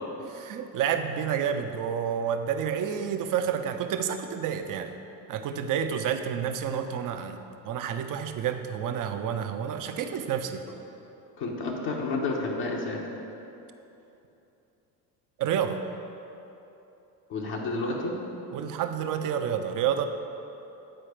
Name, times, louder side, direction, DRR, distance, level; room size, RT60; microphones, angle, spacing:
voice 1, 0.3-4.9 5.3-10.6 15.4-15.8 18.5-20.1, right 8 dB, 50° right, 8 dB, 0.6 m, -29 dB
voice 2, 11.4-13.0 17.3-18.2, left 3 dB, 65° left, -2 dB, 1.2 m, -30 dB
9.0 x 4.2 x 5.0 m, 2.9 s
supercardioid pair, 75°, 42 cm